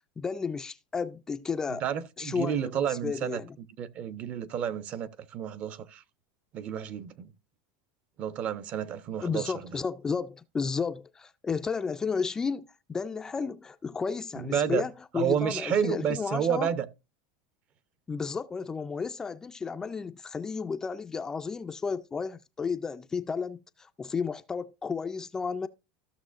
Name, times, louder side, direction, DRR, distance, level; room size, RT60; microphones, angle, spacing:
voice 1, 0.2-1.8 2.2-3.6 9.2-16.7 18.1-25.7, left 5 dB, 15° left, 0.3 m, -33 dB
voice 2, 1.7-6.0 6.5-7.3 8.2-9.5 14.4-14.8 15.1-16.9, right 8 dB, 35° right, 0.7 m, -30 dB
14.0 x 6.3 x 2.5 m
supercardioid pair, 140°, 4 cm